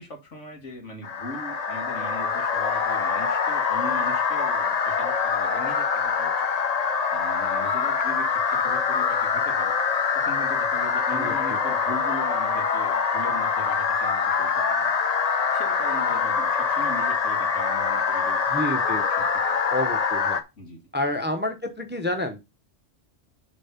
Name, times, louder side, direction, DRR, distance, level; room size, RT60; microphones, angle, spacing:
voice 1, 0.0-6.5 7.1-9.8 10.1-15.0 15.5-18.6 19.2-19.6 20.6-20.8, left 1 dB, 70° left, 3 dB, 2.3 m, -39 dB
sound 1, 1.0-20.4, left 5 dB, 40° left, 0.6 m, -24 dB
voice 2, 11.1-11.6 18.5-19.0 19.7-20.4 20.9-22.4, left 1 dB, 10° right, 6 dB, 0.8 m, -29 dB
7.3 x 4.1 x 5.7 m, 0.25 s
omnidirectional pair, 1.3 m